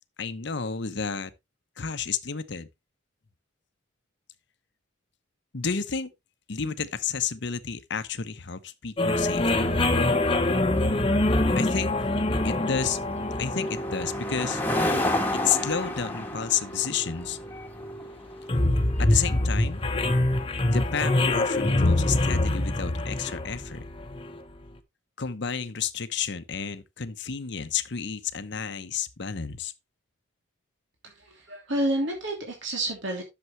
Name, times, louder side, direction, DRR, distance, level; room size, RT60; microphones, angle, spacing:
voice 1, 0.2-1.3 1.8-2.7 5.5-6.1 6.5-10.0 11.5-11.9 12.4-13.0 13.4-14.6 15.4-17.4 19.0-19.8 20.6-23.8 25.2-29.7, left 7 dB, 60° left, 0.9 m, -31 dB
sound 1, 9.0-24.4, left 1 dB, 25° left, 1.0 m, -25 dB
sound 2, 9.1-22.6, left 1 dB, 10° left, 1.5 m, -34 dB
voice 2, 31.0-33.2, right 1 dB, 70° right, 3.0 m, -29 dB
11.0 x 6.9 x 3.2 m
head